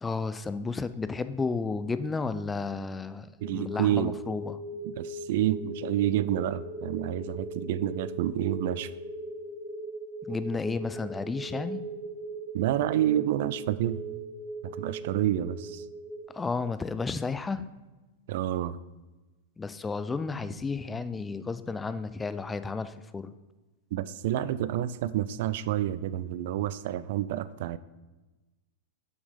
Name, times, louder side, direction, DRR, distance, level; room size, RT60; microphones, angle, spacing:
voice 1, 0.0-4.6 10.3-11.8 16.3-17.7 19.6-23.3, left 4 dB, 15° left, 12 dB, 0.4 m, -32 dB
sound 1, 3.4-16.3, right 1 dB, 15° right, 1.3 m, -39 dB
voice 2, 3.4-4.1 4.8-8.9 12.5-14.0 14.6-15.8 18.3-18.8 23.9-27.8, right 12 dB, 50° right, 16 dB, 0.3 m, -29 dB
7.6 x 6.0 x 5.2 m, 1.1 s
figure-of-eight pair, 95°, 0 cm